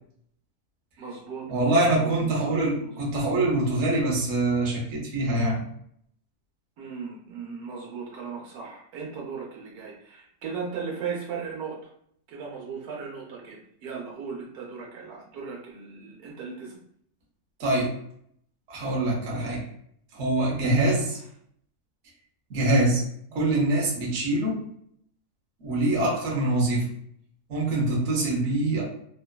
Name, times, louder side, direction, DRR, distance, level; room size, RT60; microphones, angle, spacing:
voice 1, 1.0-3.0 6.8-11.9 12.3-16.8 23.3-23.4, right 5 dB, 85° right, -2 dB, 1.3 m, -37 dB
voice 2, 1.5-5.6 17.6-17.9 18.7-19.7 20.1-21.2 22.5-23.0 23.3-24.6 25.6-26.9 27.5-28.8, right 2 dB, 55° right, -3 dB, 1.0 m, -24 dB
2.9 x 2.3 x 2.2 m, 0.67 s
omnidirectional pair, 1.6 m